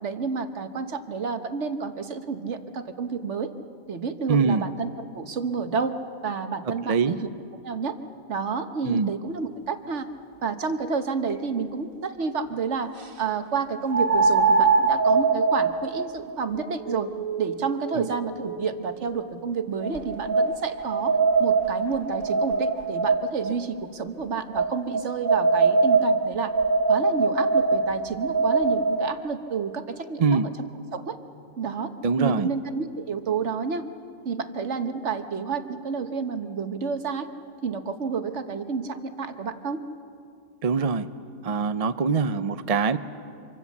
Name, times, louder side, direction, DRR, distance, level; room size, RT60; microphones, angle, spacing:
voice 1, 0.0-3.5 3.9-6.0 6.2-7.3 7.6-7.9 8.3-10.1 10.4-17.1 17.4-26.5 26.9-30.4 30.9-31.2 31.6-31.9 32.2-33.9 34.2-37.3 37.6-39.8, right 5 dB, 60° right, 8 dB, 1.4 m, -30 dB
voice 2, 4.3-4.6 6.6-7.2 8.8-9.1 17.9-18.1 30.2-30.5 32.0-32.5 40.6-41.1 41.4-43.0, right 5 dB, 45° right, 11 dB, 0.5 m, -23 dB
sound 1, 11.3-11.4 13.9-19.1 19.8-23.5 24.5-29.1, right 4 dB, 85° right, 2.0 m, -23 dB
26.0 x 24.5 x 7.2 m, 2.5 s
omnidirectional pair, 1.4 m